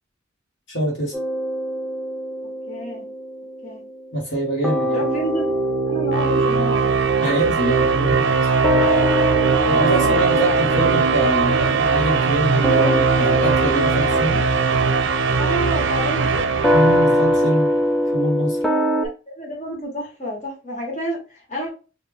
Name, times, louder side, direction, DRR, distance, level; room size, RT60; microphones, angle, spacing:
voice 1, 0.7-1.1 4.1-5.0 7.2-8.5 9.7-14.5 16.7-17.7 18.1-18.6, right 1 dB, 60° left, 1.3 m, -24 dB
sound 1, 1.1-4.4 4.6-19.1, equal, ahead, 0.4 m, -24 dB
voice 2, 2.7-3.0 3.6-3.8 4.9-5.6 5.9-7.0 9.6-11.0 15.4-16.5 19.0-21.7, equal, 40° left, 1.7 m, -29 dB
sound 2, 4.5-17.7, right 5 dB, 75° right, 0.5 m, -20 dB
3.3 x 2.6 x 3.4 m
head